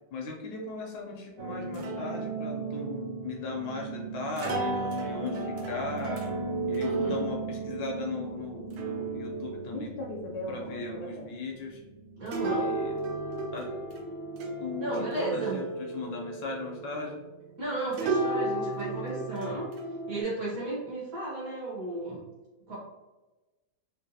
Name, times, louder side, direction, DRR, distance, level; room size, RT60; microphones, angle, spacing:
voice 1, 0.1-6.2 6.7-11.8 12.4-12.9 13.5-13.7 14.6-17.2, left 3 dB, 75° left, 1 dB, 1.2 m, -37 dB
sound 1, 1.4-17.6 17.9-20.2, right 2 dB, 85° right, 1.4 m, -34 dB
voice 2, 6.8-7.2 12.2-12.7 14.8-15.7 17.6-19.7 20.1-22.2 22.7-22.8, right 2 dB, 55° right, -5 dB, 1.1 m, -34 dB
3.9 x 2.1 x 2.6 m, 1.1 s
omnidirectional pair, 2.2 m